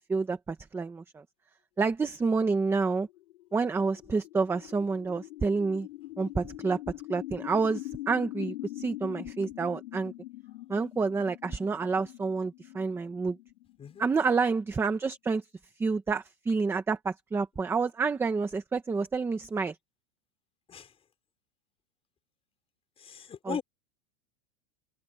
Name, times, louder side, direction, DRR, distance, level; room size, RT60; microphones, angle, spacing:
voice 1, 0.1-1.2 1.8-3.1 3.5-5.9 6.2-6.8 7.1-10.1 10.7-13.4 14.0-15.4 15.8-19.7 23.5-23.6, right 4 dB, 5° right, 0.9 m, -29 dB
sound 1, 3.1-14.8, left 17 dB, 75° left, 4.4 m, -43 dB
voice 2, 23.0-23.6, left 7 dB, 15° left, 4.7 m, -38 dB
supercardioid pair, 170°, 36 cm